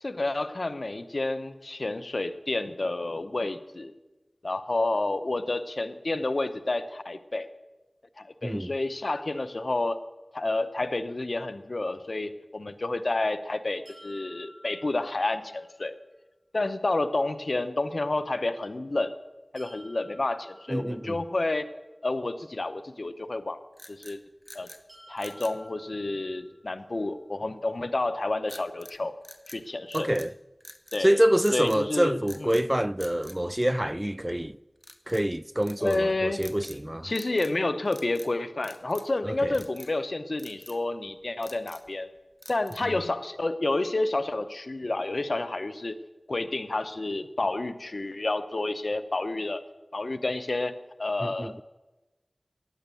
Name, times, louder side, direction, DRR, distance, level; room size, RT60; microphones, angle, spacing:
voice 1, 0.0-3.9 4.4-7.5 8.2-10.0 10.3-15.9 16.5-19.1 19.5-21.7 22.0-23.6 23.9-24.2 24.5-24.7 25.1-29.2 29.5-30.1 30.9-31.2 31.5-32.6 35.8-36.4 37.0-42.1 42.5-46.0 46.3-49.6 49.9-50.7 51.0-51.5, left 2 dB, 70° left, 0.9 m, -30 dB
sound 1, 13.9-15.8 19.6-21.6 24.9-26.9, equal, 80° right, 6.3 m, -53 dB
voice 2, 20.7-21.2 29.9-30.3 31.0-34.6 35.1-37.1 39.2-39.6 42.8-42.9 51.2-51.6, right 1 dB, 20° right, 0.4 m, -26 dB
sound 2, 23.7-24.8 25.2-25.6 28.5-29.0 29.2-30.3 30.6-31.1 31.4-31.8 32.2-32.7 33.0-34.2 34.8-35.3 35.6-36.0 36.4-36.8 37.1-37.6 37.9-38.3 38.6-39.2 39.5-39.9 40.4-40.8 41.2-41.9 42.4-43.0, equal, 5° left, 1.1 m, -48 dB
15.5 x 10.0 x 7.0 m
wide cardioid pair, 40°, 0 cm